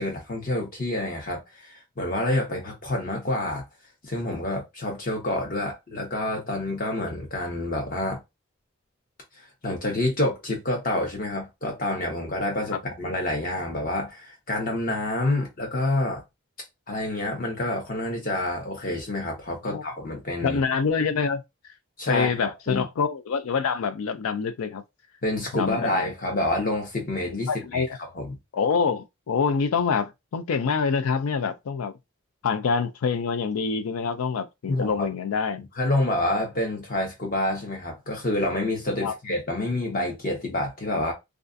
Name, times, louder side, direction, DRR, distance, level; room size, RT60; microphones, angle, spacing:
voice 1, 0.0-3.6 4.0-8.2 9.6-16.2 16.9-20.6 22.0-22.9 25.2-27.8 28.1-28.4 34.7-35.1 35.8-41.1, left 1 dB, 40° left, 0.9 m, -28 dB
voice 2, 20.4-21.4 22.1-24.8 25.5-26.1 27.5-28.0 28.5-31.9 32.4-35.6 39.0-39.1, left 5 dB, 90° left, 0.4 m, -26 dB
2.4 x 2.4 x 2.5 m
head